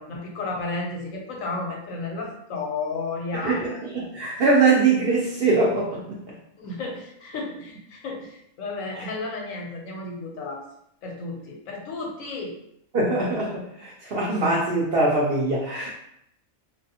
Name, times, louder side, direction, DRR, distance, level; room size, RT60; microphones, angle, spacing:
voice 1, 0.0-3.6 6.6-10.6 11.0-12.6, left 3 dB, 70° left, 0 dB, 1.1 m, -32 dB
voice 2, 3.4-6.2 12.9-15.9, right 3 dB, 60° right, -4 dB, 0.6 m, -22 dB
3.2 x 2.6 x 2.7 m, 0.74 s
omnidirectional pair, 1.5 m